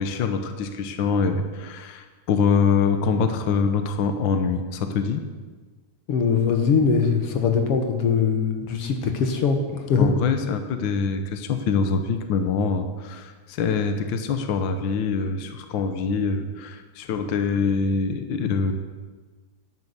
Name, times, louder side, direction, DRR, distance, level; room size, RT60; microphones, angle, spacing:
voice 1, 0.0-5.2 9.9-18.7, left 5 dB, 70° left, 7 dB, 1.1 m, -24 dB
voice 2, 6.1-10.1, left 5 dB, 55° left, 5 dB, 2.1 m, -22 dB
11.0 x 11.0 x 8.0 m, 1.4 s
omnidirectional pair, 3.5 m